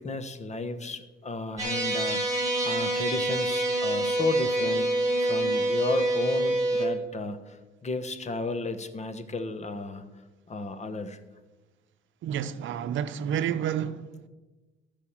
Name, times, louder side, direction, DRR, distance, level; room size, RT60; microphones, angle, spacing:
voice 1, 0.0-4.9 5.2-10.0 10.5-11.2, left 3 dB, 35° left, 1.1 m, -33 dB
sound 1, 1.6-6.9, right 1 dB, 15° right, 3.9 m, -26 dB
voice 2, 12.2-14.1, right 9 dB, 75° right, 0.7 m, -29 dB
13.5 x 5.1 x 7.2 m
cardioid pair, 90°, 20 cm